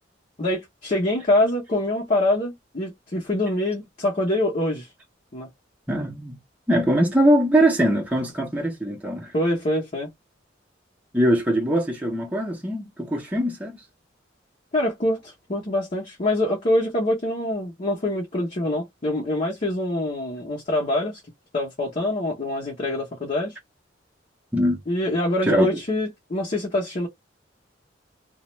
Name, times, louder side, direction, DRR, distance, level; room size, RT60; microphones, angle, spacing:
voice 1, 0.4-4.9 5.3-5.5 9.3-10.1 14.7-21.2 21.5-23.6 24.9-27.1, left 1 dB, 40° left, 0.8 m, -25 dB
voice 2, 5.9-6.4 6.7-9.3 11.1-13.8 24.5-24.8 25.5-25.7, equal, 10° right, 0.7 m, -22 dB
2.4 x 2.0 x 3.0 m
head